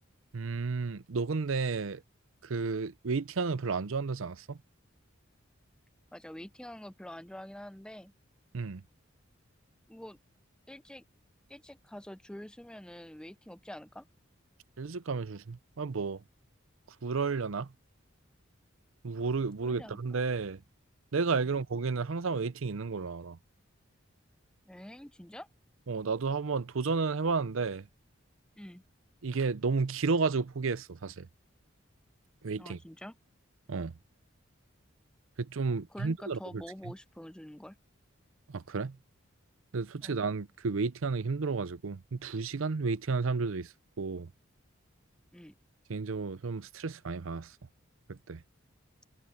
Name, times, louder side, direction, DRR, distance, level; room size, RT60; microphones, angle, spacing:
voice 1, 0.3-2.0 2.4-4.6 8.5-8.8 14.8-16.2 17.0-17.7 19.0-20.6 21.1-23.4 25.9-27.9 29.2-31.3 32.4-32.8 33.7-33.9 35.4-36.4 38.5-39.0 39.7-44.3 45.9-47.5 48.1-48.4, right 4 dB, 75° right, 0.6 m, -32 dB
voice 2, 6.1-8.1 9.9-10.2 10.7-11.0 11.5-14.0 19.7-20.0 21.4-21.6 24.7-25.5 28.6-28.8 32.6-33.1 35.9-37.8 40.0-40.2 45.3-45.5, left 1 dB, 5° left, 0.4 m, -46 dB
head